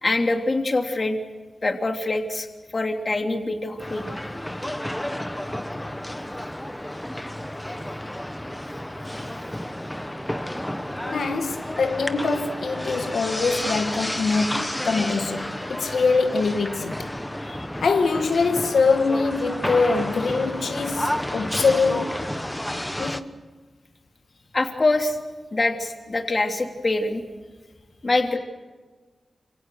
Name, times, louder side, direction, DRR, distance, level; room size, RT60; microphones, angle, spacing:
voice 1, 0.0-1.2 1.6-2.5 2.7-4.0 17.5-17.6 24.5-25.2 25.5-27.2 28.0-28.4, left 2 dB, 30° left, 3.2 m, -24 dB
sound 1, 3.8-23.2, left 1 dB, 5° left, 1.3 m, -31 dB
voice 2, 11.0-17.1 17.8-22.2 23.0-23.3, left 4 dB, 80° left, 2.1 m, -23 dB
29.5 x 27.0 x 6.6 m
wide cardioid pair, 150°, 0 cm